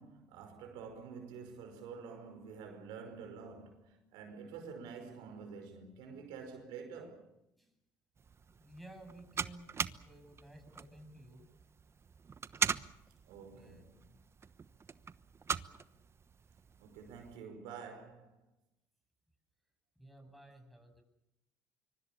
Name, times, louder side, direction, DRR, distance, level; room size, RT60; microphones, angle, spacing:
voice 1, 0.0-7.2 13.3-13.9 16.8-18.4, right 5 dB, 85° right, 5.3 m, -48 dB
sound 1, 8.2-17.4, right 5 dB, 35° right, 1.1 m, -42 dB
voice 2, 8.6-11.5 13.5-14.2 20.0-21.0, right 1 dB, ahead, 7.6 m, -55 dB
25.0 x 24.0 x 7.1 m
supercardioid pair, 75°, 7 cm